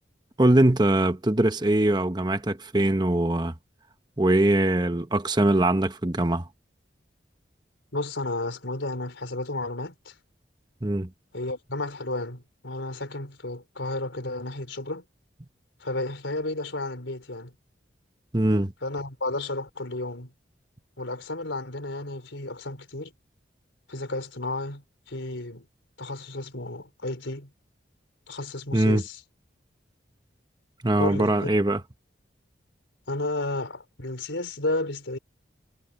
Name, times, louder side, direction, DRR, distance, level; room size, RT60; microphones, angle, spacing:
voice 1, 0.4-3.5 4.2-6.4 10.8-11.1 18.3-18.7 28.7-29.0 30.8-31.8, right 1 dB, 20° right, 1.0 m, -22 dB
voice 2, 7.9-10.1 11.3-15.0 15.8-17.5 18.8-20.3 21.0-23.1 23.9-25.7 26.0-27.5 28.3-29.2 31.0-31.6 33.1-35.2, left 2 dB, 85° left, 4.3 m, -32 dB
head